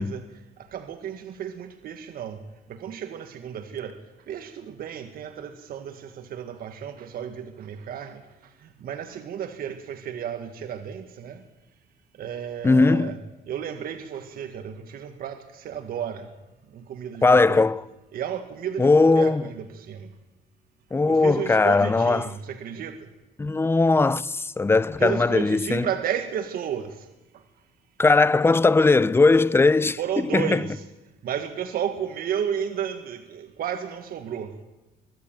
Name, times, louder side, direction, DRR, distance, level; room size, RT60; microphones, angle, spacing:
voice 1, 0.0-2.4 2.7-4.0 4.3-11.4 12.2-13.2 13.5-16.3 16.7-17.7 18.1-20.1 21.1-23.1 25.0-27.1 27.3-27.4 30.0-30.8 31.2-34.5, right 8 dB, 60° right, 1.8 m, -33 dB
voice 2, 12.6-13.2 17.2-17.8 18.8-19.4 20.9-22.3 23.4-25.9 28.0-30.0 30.3-30.6, left 3 dB, 15° left, 0.6 m, -19 dB
23.5 x 13.0 x 9.1 m
cardioid pair, 110°, 17 cm